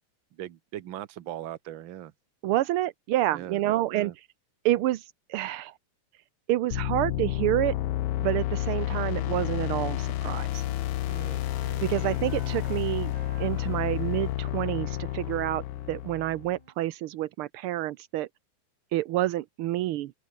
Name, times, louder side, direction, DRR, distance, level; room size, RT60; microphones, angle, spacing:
voice 1, 0.3-2.1 3.3-3.6 3.9-4.1 11.1-11.9, right 12 dB, 60° right, 1.3 m, -40 dB
voice 2, 2.4-4.1 4.6-5.0 5.3-5.7 6.5-7.7 8.2-10.6 11.8-13.1 13.4-18.3 18.9-20.1, right 14 dB, 85° right, 1.2 m, -28 dB
sound 1, 6.7-16.5, left 14 dB, 70° left, 1.5 m, -30 dB
Wind instrument woodwind instrument, 10.2-12.8 13.1-16.7, right 4 dB, 40° right, 4.2 m, -52 dB
open air
omnidirectional pair, 3.3 m